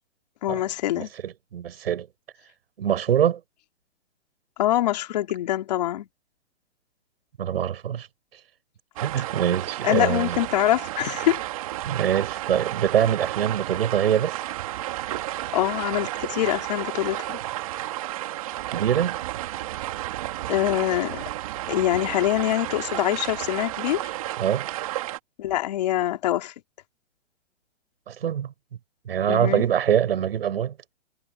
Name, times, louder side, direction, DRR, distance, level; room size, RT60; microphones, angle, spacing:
voice 1, 0.4-1.1 4.6-6.1 9.8-11.4 15.5-17.4 20.5-21.2 21.7-24.0 25.4-26.5 29.3-29.6, left 13 dB, 30° left, 3.1 m, -24 dB
voice 2, 1.0-2.1 2.8-3.4 7.4-8.1 9.0-10.4 11.9-14.4 18.7-19.2 24.4-24.7 28.1-28.5 29.1-30.7, right 9 dB, 50° right, 7.4 m, -24 dB
sound 1, 9.0-25.2, right 15 dB, 25° right, 2.2 m, -32 dB
hypercardioid pair, 175°, 38 cm